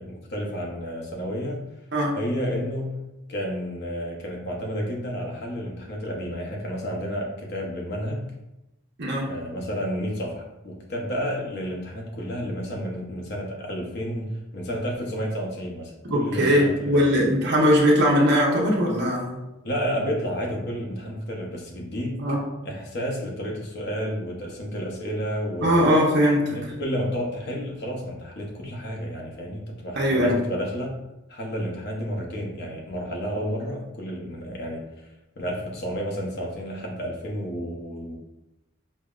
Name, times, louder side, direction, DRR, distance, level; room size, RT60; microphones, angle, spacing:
voice 1, 0.0-1.6 2.1-8.3 9.3-17.1 19.6-22.2 22.6-25.8 26.5-30.9 31.3-34.9 35.4-38.2, equal, 55° left, -1 dB, 0.7 m, -31 dB
voice 2, 16.1-19.4 22.2-22.4 25.6-26.6 29.9-30.4, equal, 55° right, -3 dB, 0.8 m, -20 dB
5.4 x 2.1 x 2.4 m, 0.97 s
head